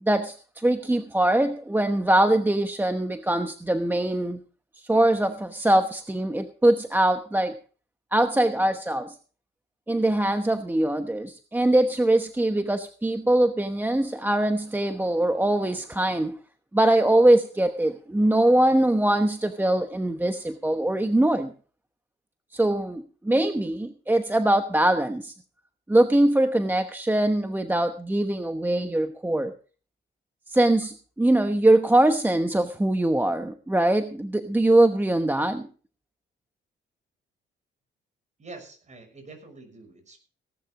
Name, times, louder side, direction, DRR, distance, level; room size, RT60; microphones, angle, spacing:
voice 1, 0.0-4.4 4.8-7.6 8.1-9.2 9.9-16.4 16.7-21.5 22.5-25.3 25.9-29.5 30.5-35.7, right 1 dB, 10° right, 7 dB, 1.0 m, -22 dB
voice 2, 38.4-40.2, right 3 dB, 35° right, 6 dB, 6.3 m, -45 dB
17.5 x 12.0 x 3.8 m, 0.39 s
cardioid pair, 90°, 20 cm